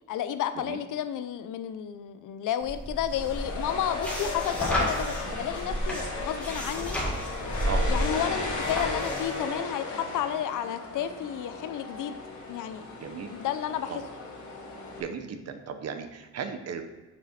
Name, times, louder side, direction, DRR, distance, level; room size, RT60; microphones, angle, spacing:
voice 1, 0.1-7.0 7.9-12.2 12.5-12.8 13.3-13.9, left 10 dB, 90° left, 11 dB, 0.6 m, -32 dB
sound 1, 2.6-9.4, equal, 5° left, 1.6 m, -32 dB
sound 2, 3.1-15.0, left 3 dB, 65° left, 1.7 m, -36 dB
voice 2, 13.0-13.3 13.9-14.0 15.0-16.8, right 6 dB, 55° right, 8 dB, 0.8 m, -36 dB
6.4 x 6.3 x 4.2 m, 1.2 s
cardioid pair, 160°, 30 cm